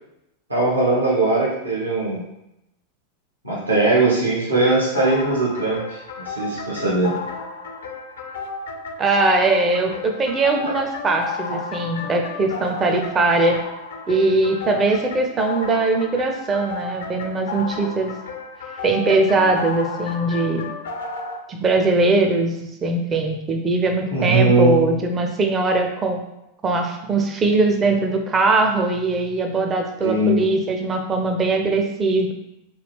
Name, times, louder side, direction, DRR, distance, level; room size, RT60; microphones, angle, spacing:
voice 1, 0.5-2.2 3.4-5.8 6.3-7.2 24.1-24.7 30.0-30.4, right 2 dB, 80° right, -6 dB, 1.1 m, -19 dB
sound 1, 4.7-21.4, left 4 dB, 60° left, 0.4 m, -33 dB
voice 2, 9.0-13.6 14.1-18.1 18.8-20.7 21.5-26.2 26.6-32.3, right 3 dB, 20° right, 3 dB, 0.4 m, -21 dB
3.2 x 2.3 x 3.5 m, 0.87 s
figure-of-eight pair, 90°, 0 cm